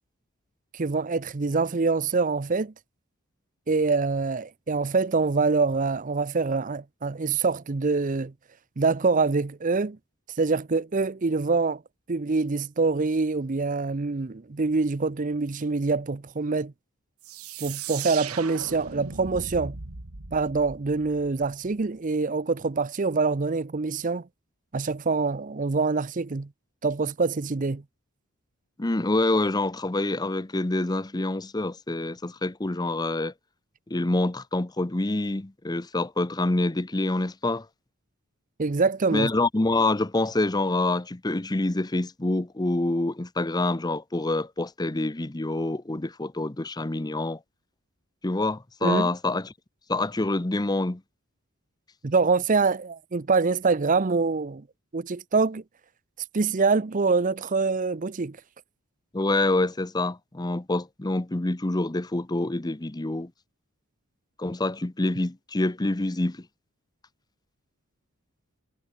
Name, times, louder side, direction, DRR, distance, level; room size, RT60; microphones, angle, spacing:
voice 1, 0.7-2.7 3.7-8.3 8.8-10.0 10.4-11.8 12.1-16.7 17.6-19.8 20.3-24.3 24.7-26.5 26.8-27.8 38.6-39.3 48.8-49.1 52.0-54.6 54.9-55.6 56.3-58.4, right 4 dB, 35° right, 0.6 m, -25 dB
sound 1, 17.2-21.8, right 6 dB, 90° right, 2.3 m, -38 dB
voice 2, 28.8-33.3 33.9-37.7 39.1-47.4 48.2-49.5 49.9-51.0 59.1-63.3 64.4-66.4, left 2 dB, 20° left, 0.7 m, -26 dB
head